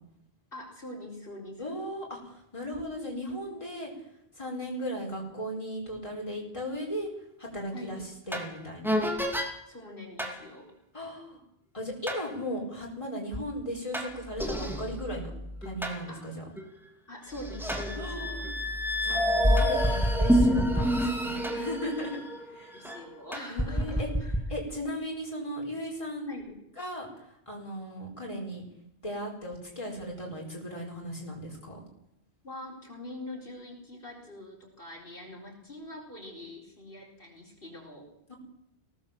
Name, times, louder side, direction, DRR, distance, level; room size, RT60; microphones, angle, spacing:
voice 1, 0.5-1.8 7.7-8.1 9.7-10.7 14.6-14.8 16.1-16.2 17.1-18.4 22.7-24.3 26.3-26.6 32.4-38.1, left 1 dB, 55° left, -1 dB, 4.7 m, -43 dB
voice 2, 1.6-3.9 4.3-7.1 7.4-8.0 8.3-9.0 10.9-11.4 11.7-15.3 15.6-16.4 18.0-18.5 19.0-22.2 22.5-22.7 23.5-24.1 24.5-26.3 26.8-27.1 27.5-28.6 29.0-31.8 38.3-38.4, equal, 30° left, -2 dB, 5.0 m, -36 dB
sound 1, 8.3-8.5 8.8-9.5 10.2-10.4 12.1-12.2 13.9-16.0 16.6-16.7 17.3-23.0 23.3-24.4, equal, ahead, 2.7 m, -28 dB
20.5 x 17.5 x 7.6 m, 0.82 s
omnidirectional pair, 1.1 m